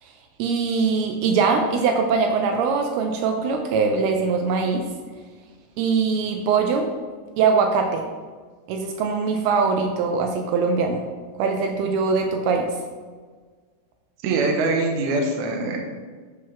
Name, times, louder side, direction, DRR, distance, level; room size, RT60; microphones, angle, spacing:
voice 1, 0.4-4.9 5.8-6.9 7.4-8.0 8.7-11.0 11.4-12.7, right 5 dB, 85° right, 4 dB, 2.5 m, -22 dB
voice 2, 14.2-15.8, right 3 dB, 65° right, 1 dB, 2.0 m, -23 dB
8.6 x 3.6 x 5.8 m, 1.5 s
omnidirectional pair, 4.6 m